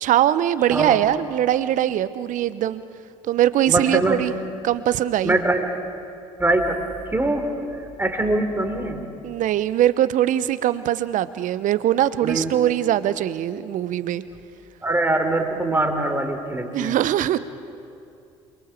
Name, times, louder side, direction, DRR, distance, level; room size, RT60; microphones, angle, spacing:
voice 1, 0.0-2.8 3.2-4.3 4.6-5.4 9.2-14.2 16.7-17.4, right 12 dB, 55° right, 15 dB, 1.0 m, -21 dB
voice 2, 0.7-1.0 3.7-4.2 5.2-5.8 6.4-6.8 7.1-9.0 12.2-12.6 14.8-17.0, right 2 dB, 15° right, 4 dB, 3.8 m, -23 dB
28.0 x 23.0 x 7.4 m, 2.5 s
hypercardioid pair, 55°, 16 cm